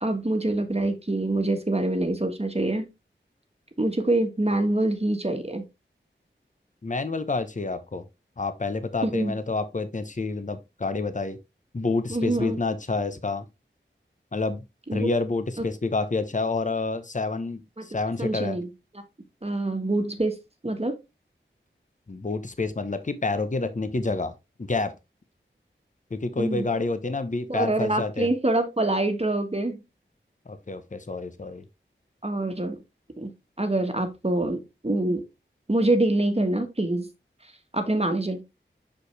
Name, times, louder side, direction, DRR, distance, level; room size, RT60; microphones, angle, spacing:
voice 1, 0.0-2.8 3.8-5.6 9.0-9.4 12.1-12.6 14.9-15.1 17.8-17.9 18.2-18.7 19.4-20.4 20.6-21.0 26.4-26.6 27.5-29.8 32.2-32.8 33.2-33.3 33.6-35.2 35.7-37.1 37.7-38.4, right 2 dB, 30° right, 1.4 m, -25 dB
voice 2, 6.8-8.0 8.4-11.4 11.7-13.4 14.3-14.6 14.9-18.6 22.1-24.3 24.6-24.9 26.1-28.3 30.5-31.6, left 3 dB, 40° left, 0.9 m, -28 dB
6.5 x 5.2 x 3.3 m
wide cardioid pair, 50°, 20 cm